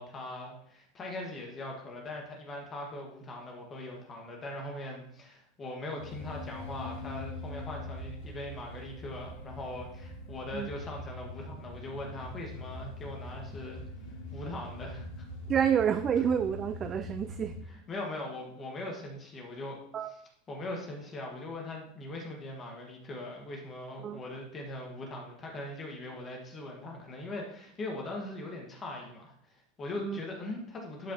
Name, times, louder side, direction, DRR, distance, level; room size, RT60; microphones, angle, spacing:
voice 1, 0.0-13.8 14.3-15.3 17.9-19.8 20.5-31.1, left 2 dB, 25° left, 0 dB, 1.6 m, -40 dB
sound 1, 6.0-17.6, left 1 dB, 60° left, 3.2 m, -43 dB
voice 2, 15.5-17.6 19.9-20.1 24.0-24.2 30.0-30.2, right 8 dB, 30° right, 9 dB, 0.4 m, -28 dB
11.0 x 5.0 x 2.9 m, 0.68 s
supercardioid pair, 115°, 0 cm